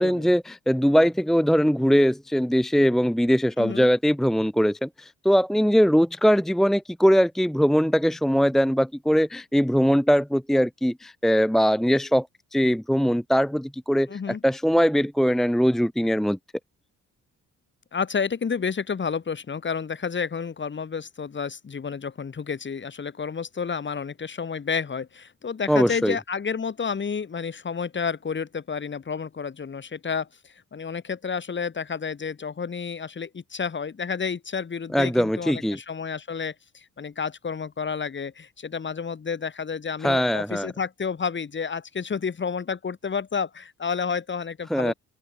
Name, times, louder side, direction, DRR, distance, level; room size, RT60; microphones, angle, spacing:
voice 1, 0.0-12.3 12.5-16.4 25.7-26.2 34.9-35.8 40.0-40.7 44.7-44.9, equal, ahead, 1.0 m, -21 dB
voice 2, 3.6-3.9 14.1-14.4 17.9-44.9, left 6 dB, 40° left, 4.0 m, -30 dB
cardioid pair, 90°, 30 cm